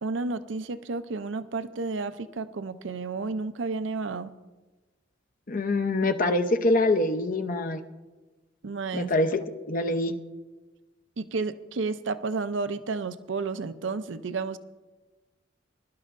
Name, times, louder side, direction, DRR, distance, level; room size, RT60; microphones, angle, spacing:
voice 1, 0.0-4.3 8.6-9.1 11.2-14.6, right 4 dB, 75° right, 12 dB, 0.6 m, -31 dB
voice 2, 5.5-7.8 8.9-10.1, left 2 dB, 45° left, 6 dB, 0.8 m, -25 dB
22.5 x 12.0 x 2.5 m, 1.2 s
head